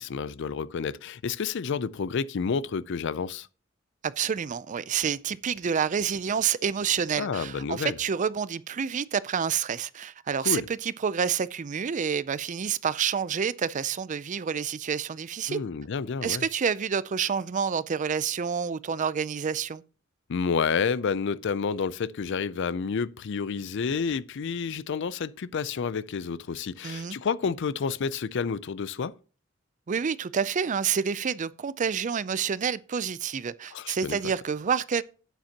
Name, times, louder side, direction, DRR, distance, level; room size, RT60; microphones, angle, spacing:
voice 1, 0.0-3.5 7.2-8.0 10.4-10.7 15.5-16.4 20.3-29.1 33.7-34.2, left 5 dB, 60° left, 0.4 m, -30 dB
voice 2, 4.0-15.6 16.2-19.8 26.8-27.2 29.9-35.0, right 7 dB, 40° right, 0.4 m, -28 dB
11.5 x 9.2 x 2.9 m
head